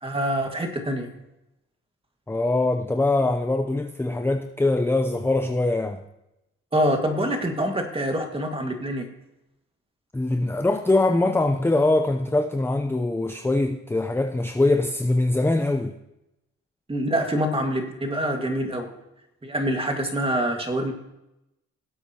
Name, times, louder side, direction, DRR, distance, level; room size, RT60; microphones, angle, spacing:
voice 1, 0.0-1.1 6.7-9.1 16.9-18.9 19.4-20.9, right 1 dB, 20° right, 4 dB, 1.9 m, -25 dB
voice 2, 2.3-6.0 10.1-15.9, left 2 dB, 10° left, 6 dB, 0.6 m, -23 dB
18.0 x 8.0 x 2.9 m, 0.90 s
cardioid pair, 90°, 30 cm